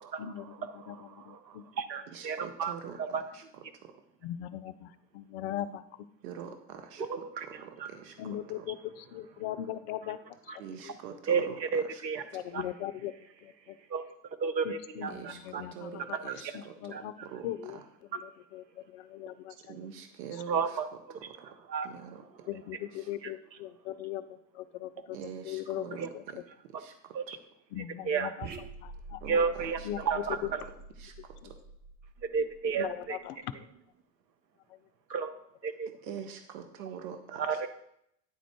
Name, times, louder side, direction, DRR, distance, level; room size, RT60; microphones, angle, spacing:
voice 1, 0.2-1.6 4.2-5.8 8.2-10.2 10.4-11.0 12.3-13.1 13.4-13.8 14.6-16.2 16.5-17.1 17.4-17.8 18.1-19.8 22.5-25.2 25.4-26.4 27.7-29.4 29.8-30.5 31.4-31.5 32.8-33.5 34.7-34.8, left 12 dB, 45° left, 13 dB, 0.5 m, -39 dB
voice 2, 0.8-2.7 3.1-3.2 7.1-7.5 7.8-7.9 11.3-11.5 11.7-12.2 12.5-12.6 13.9-14.0 14.4-15.6 16.9-17.0 20.5-20.8 21.7-21.9 26.0-26.1 27.1-27.4 28.1-28.3 29.3-29.8 30.1-30.4 32.3-33.2 35.1-35.3 35.6-35.9 37.4-37.7, right 6 dB, 90° right, 9 dB, 0.8 m, -31 dB
voice 3, 2.1-3.9 6.2-8.2 8.6-8.7 10.6-12.0 12.3-12.4 15.1-17.8 19.7-21.6 21.8-22.2 22.9-23.1 25.1-27.4 29.2-30.1 31.0-31.6 35.9-37.6, right 7 dB, 60° right, 6 dB, 0.9 m, -45 dB
sound 1, 28.4-33.0, right 3 dB, 20° right, 0.5 m, -47 dB
9.7 x 3.7 x 3.5 m, 0.75 s
hypercardioid pair, 85°, 49 cm